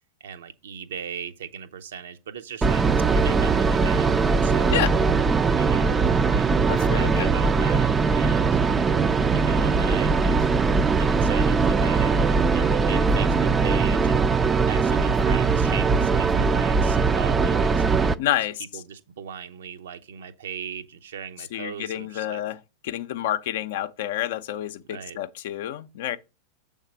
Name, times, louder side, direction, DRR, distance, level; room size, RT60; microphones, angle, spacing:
voice 1, 0.2-2.9 3.1-4.1 4.4-4.9 5.6-6.0 6.3-8.6 9.3-10.6 11.0-14.3 14.7-18.1 18.6-22.4 24.8-25.2, right 8 dB, 60° right, 0.7 m, -38 dB
sound 1, 2.6-18.1, right 4 dB, 15° right, 0.4 m, -21 dB
voice 2, 6.7-7.3 18.2-18.6 21.5-22.6 22.8-26.2, left 12 dB, 55° left, 0.5 m, -28 dB
7.1 x 3.5 x 5.1 m
figure-of-eight pair, 90°, 0 cm